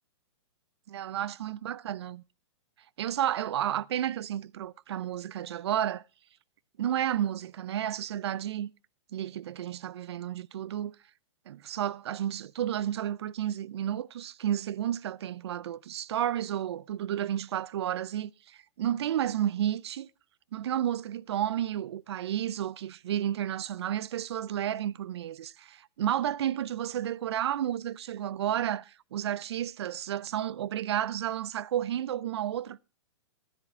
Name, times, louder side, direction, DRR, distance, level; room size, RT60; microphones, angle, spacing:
voice 1, 0.9-2.2 3.0-6.0 6.8-8.7 9.1-10.9 11.5-20.1 20.5-32.8, right 11 dB, 60° right, 0.4 m, -31 dB
11.0 x 10.0 x 4.3 m
hypercardioid pair, 170°, 16 cm